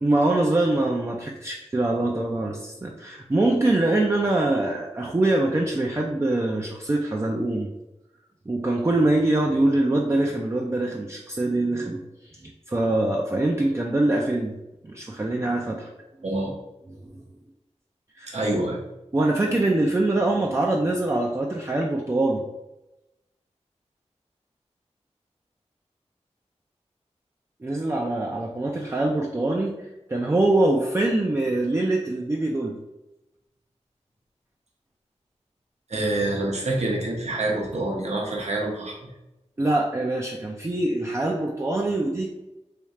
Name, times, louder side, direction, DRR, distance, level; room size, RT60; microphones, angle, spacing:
voice 1, 0.0-7.7 8.5-14.5 14.8-15.9 16.9-17.0 18.2-18.4 19.1-22.4 27.6-32.8 39.6-42.3, right 2 dB, 25° right, 0 dB, 0.4 m, -24 dB
voice 2, 16.2-16.5 18.3-18.8 35.9-39.0, right 2 dB, 70° right, -2 dB, 1.0 m, -26 dB
3.3 x 2.4 x 4.1 m, 0.96 s
wide cardioid pair, 70°, 12 cm